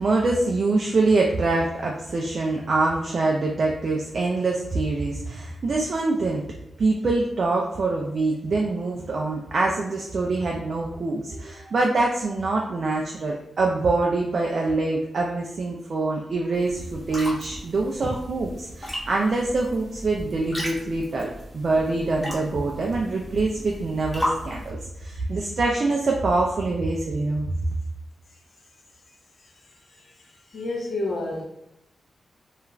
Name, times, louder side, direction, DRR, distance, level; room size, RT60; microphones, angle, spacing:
voice 1, 0.0-6.4 6.8-27.5, right 3 dB, 50° right, -1 dB, 0.3 m, -24 dB
sound 1, 16.5-24.7, equal, 5° left, 0.7 m, -35 dB
voice 2, 29.4-31.4, left 2 dB, 55° left, -1 dB, 0.6 m, -32 dB
2.4 x 2.3 x 3.0 m, 0.87 s
wide cardioid pair, 140°, 0 cm